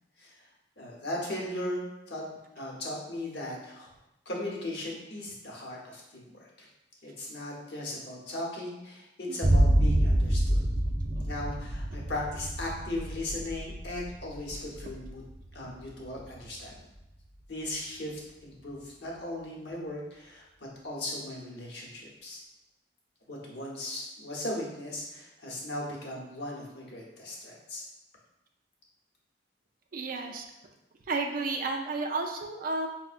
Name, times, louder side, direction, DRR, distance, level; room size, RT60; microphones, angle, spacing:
voice 1, 0.2-0.5 0.8-2.2 2.6-3.9 4.2-6.5 7.0-10.6 11.2-15.2 15.5-16.7 17.5-22.4 23.3-27.8, left 1 dB, 65° left, -3 dB, 0.9 m, -37 dB
sound 1, 9.4-16.8, right 1 dB, 10° right, 0.9 m, -27 dB
voice 2, 29.9-30.4 31.1-32.9, right 3 dB, 50° right, 3 dB, 0.4 m, -32 dB
5.2 x 2.1 x 2.4 m, 0.95 s
head